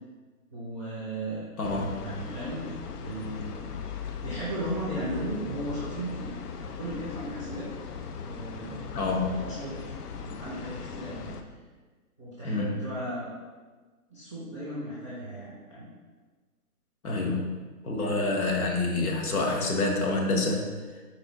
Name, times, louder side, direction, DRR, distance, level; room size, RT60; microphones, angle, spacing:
voice 1, 0.5-1.5 2.0-3.6 4.2-7.7 8.2-8.9 9.3-11.3 12.2-13.3 14.1-15.9, right 1 dB, 20° left, -10 dB, 0.5 m, -36 dB
sound 1, 1.6-11.4, left 6 dB, 90° left, 0.5 m, -39 dB
voice 2, 1.6-2.0 8.9-9.4 12.4-12.8 17.0-17.5 17.8-20.6, left 2 dB, 70° left, 0 dB, 0.9 m, -27 dB
4.1 x 2.2 x 3.7 m, 1.3 s
hypercardioid pair, 160°, 46 cm